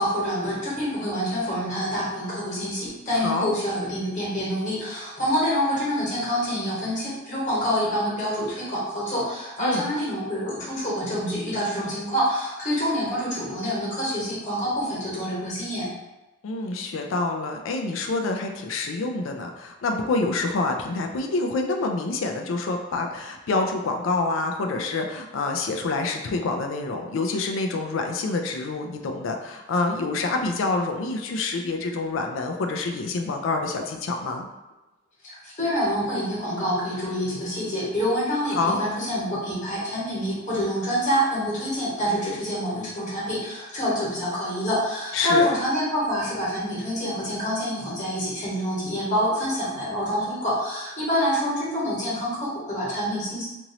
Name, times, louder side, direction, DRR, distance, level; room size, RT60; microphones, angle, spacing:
voice 1, 0.0-15.9 35.2-53.5, equal, 40° left, -7 dB, 1.2 m, -26 dB
voice 2, 9.6-9.9 16.4-34.5 38.5-38.8 45.1-45.4, left 3 dB, 75° left, 4 dB, 0.4 m, -27 dB
2.9 x 2.6 x 2.8 m, 1.0 s
head